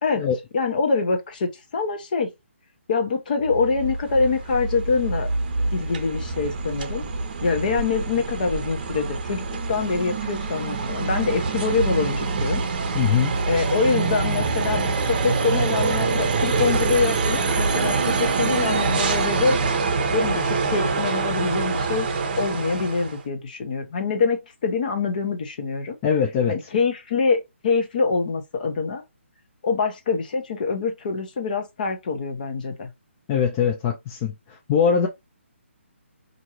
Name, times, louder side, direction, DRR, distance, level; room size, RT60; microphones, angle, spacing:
voice 1, 0.5-2.3 2.9-5.3 5.7-7.1 7.4-12.6 13.5-19.6 20.1-22.1 22.4-25.9 26.5-29.0 29.6-32.9, left 4 dB, 40° left, 0.9 m, -25 dB
sound 1, 3.4-23.2, right 4 dB, 40° right, 0.7 m, -25 dB
voice 2, 12.9-13.3 26.0-26.6 33.3-35.1, left 7 dB, 20° left, 0.4 m, -22 dB
4.4 x 2.6 x 2.9 m
hypercardioid pair, 160°, 7 cm